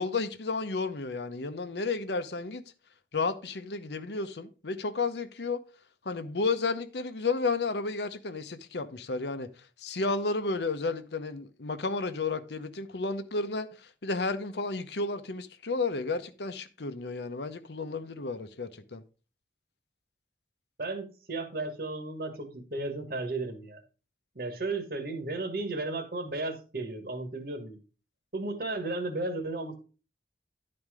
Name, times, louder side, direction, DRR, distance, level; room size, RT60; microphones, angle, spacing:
voice 1, 0.0-2.6 3.1-5.6 6.0-9.5 9.8-19.0, left 3 dB, 75° left, 0.8 m, -32 dB
voice 2, 20.8-23.8 24.3-27.8 28.3-29.8, right 2 dB, 55° right, 1.5 m, -34 dB
11.0 x 4.3 x 4.8 m
head